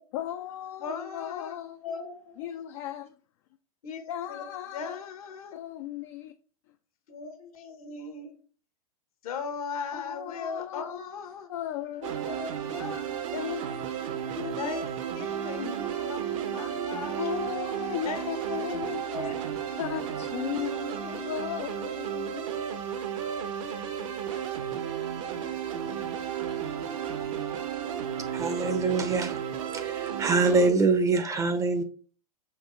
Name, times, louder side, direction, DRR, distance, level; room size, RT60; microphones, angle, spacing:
voice 1, 0.1-1.8 2.4-3.1 4.1-5.0 5.5-6.3 9.9-11.1 11.5-12.2 13.3-13.6 14.4-14.8 15.6-16.1 17.2-19.0 19.8-22.8 23.6-23.8, left 12 dB, 50° left, 0.4 m, -36 dB
voice 2, 0.8-1.6 1.8-2.6 3.8-5.6 7.1-8.4 9.2-11.5 12.3-13.1 14.5-17.4 18.0-18.7 19.1-19.8 20.5-21.4, left 5 dB, 65° left, 1.1 m, -39 dB
sound 1, 12.0-30.7, right 9 dB, 55° right, 0.9 m, -33 dB
voice 3, 28.3-29.4 29.7-31.8, right 3 dB, 15° right, 0.6 m, -24 dB
5.8 x 2.9 x 3.2 m
hypercardioid pair, 105°, 19 cm